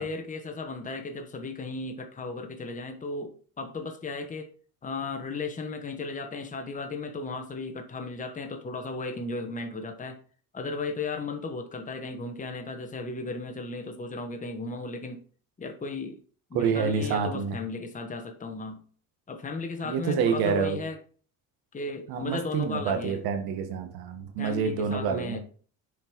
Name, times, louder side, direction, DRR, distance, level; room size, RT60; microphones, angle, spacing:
voice 1, 0.0-4.5 4.8-10.2 10.5-15.2 15.6-16.2 16.5-18.8 19.3-21.0 21.7-23.2 24.4-25.4, left 3 dB, 20° left, 1.2 m, -35 dB
voice 2, 16.5-17.6 19.8-20.8 22.1-25.4, right 6 dB, 75° right, 1.7 m, -27 dB
6.9 x 5.1 x 4.6 m
cardioid pair, 105°, 37 cm